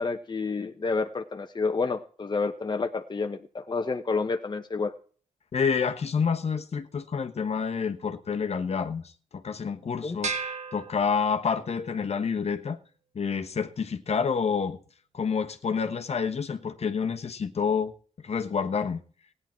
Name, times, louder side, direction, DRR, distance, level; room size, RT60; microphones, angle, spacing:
voice 1, 0.0-4.9 10.0-10.2, left 4 dB, 35° left, 1.0 m, -29 dB
voice 2, 5.5-12.8 13.1-14.8 15.1-17.9 18.2-19.0, left 6 dB, 55° left, 1.2 m, -28 dB
sound 1, 10.2-11.7, right 4 dB, 60° right, 1.6 m, -35 dB
16.0 x 10.0 x 4.4 m
cardioid pair, 70°, 13 cm